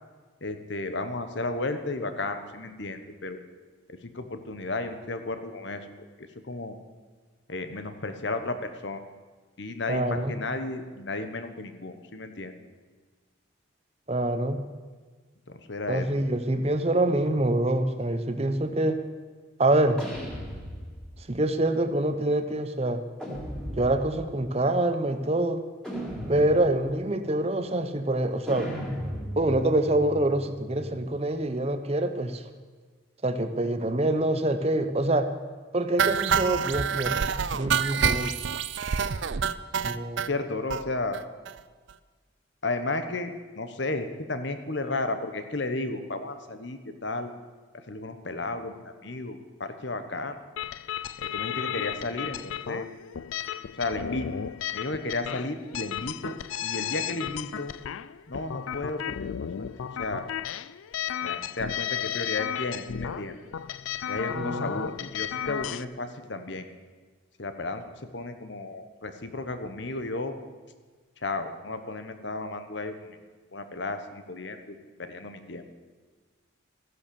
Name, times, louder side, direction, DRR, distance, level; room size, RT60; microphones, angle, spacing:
voice 1, 0.4-3.4 3.9-5.9 6.2-6.8 7.5-9.0 9.6-12.5 15.5-16.3 40.3-41.2 42.6-47.3 47.9-50.4 51.2-52.9 53.8-54.3 54.7-57.7 58.3-60.2 61.2-63.3 64.1-66.7 67.4-67.8 68.1-70.3 71.2-73.2 73.5-74.8 75.1-75.6, left 2 dB, 60° left, 8 dB, 1.2 m, -33 dB
voice 2, 9.9-10.3 14.1-14.6 15.9-19.0 19.6-20.0 21.3-23.0 23.7-25.6 26.3-28.7 29.4-32.4 33.2-35.3 35.7-37.2 37.5-38.3 39.8-40.2 64.3-64.7, right 1 dB, 30° right, 9 dB, 0.8 m, -25 dB
sound 1, 20.0-21.3 23.2-24.3 25.8-26.9 28.5-31.2, equal, 5° left, 2.7 m, -37 dB
sound 2, 36.0-40.3 40.7-40.8 41.1-41.2 41.5-41.6 41.9-42.0, right 6 dB, 65° right, 0.5 m, -27 dB
sound 3, 50.6-65.8, left 9 dB, 85° left, 0.4 m, -34 dB
14.5 x 11.0 x 7.0 m, 1.4 s
head